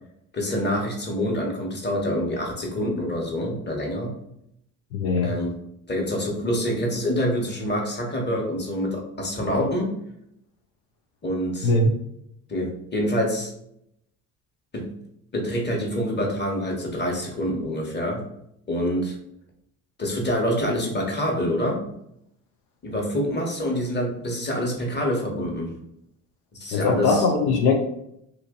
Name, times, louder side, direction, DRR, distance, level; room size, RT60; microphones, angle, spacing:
voice 1, 0.3-4.2 5.2-5.5 5.9-10.0 11.2-11.7 12.5-13.5 14.7-15.0 15.3-18.3 18.7-19.2 20.0-21.9 22.8-25.7 26.5-27.2, equal, 25° left, 0 dB, 1.2 m, -26 dB
voice 2, 4.9-5.3 11.6-11.9 26.7-27.7, left 3 dB, 85° left, 2 dB, 0.6 m, -20 dB
2.8 x 2.5 x 3.7 m, 0.76 s
supercardioid pair, 60°, 38 cm